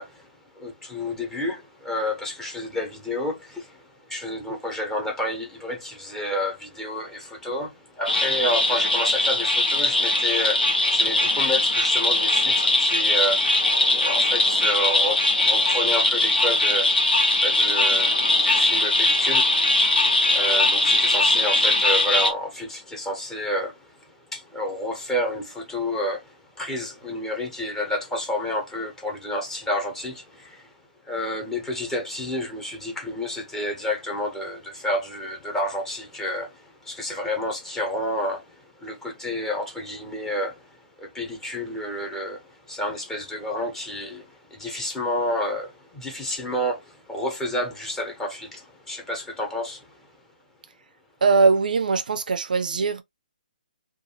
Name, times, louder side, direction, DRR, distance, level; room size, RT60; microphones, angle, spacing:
voice 1, 0.0-30.7 31.0-50.0, left 1 dB, 10° left, 1.0 m, -30 dB
sound 1, 8.0-22.3, left 2 dB, 80° left, 1.0 m, -20 dB
voice 2, 51.2-53.0, right 4 dB, 60° right, 0.4 m, -21 dB
2.5 x 2.4 x 2.9 m
figure-of-eight pair, 140°, 5 cm